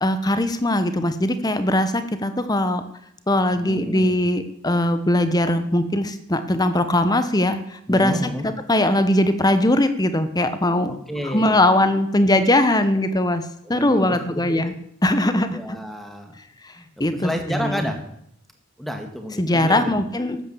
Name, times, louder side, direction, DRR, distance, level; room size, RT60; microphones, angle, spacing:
voice 1, 0.0-2.8 3.3-8.2 8.4-10.9 11.3-13.4 13.7-14.7 15.0-15.8 16.6-16.7 17.0-17.9 19.4-20.4, left 1 dB, 20° left, 10 dB, 0.9 m, -20 dB
voice 2, 3.5-4.2 7.9-8.5 10.9-11.6 13.6-14.6 15.5-16.4 16.8-18.0 18.8-20.0, equal, ahead, 4 dB, 1.6 m, -30 dB
13.0 x 8.8 x 7.1 m, 0.74 s
head